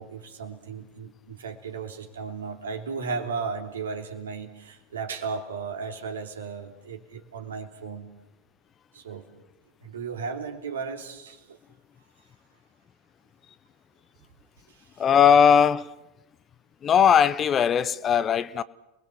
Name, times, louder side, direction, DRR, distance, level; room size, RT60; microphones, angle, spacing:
voice 1, 0.0-8.1 8.9-9.3 9.8-11.6 14.7-15.0, right 5 dB, 70° right, 3.2 m, -35 dB
voice 2, 15.0-15.9 16.8-18.6, left 8 dB, 30° left, 0.9 m, -19 dB
30.0 x 21.0 x 7.5 m
figure-of-eight pair, 80°, 0 cm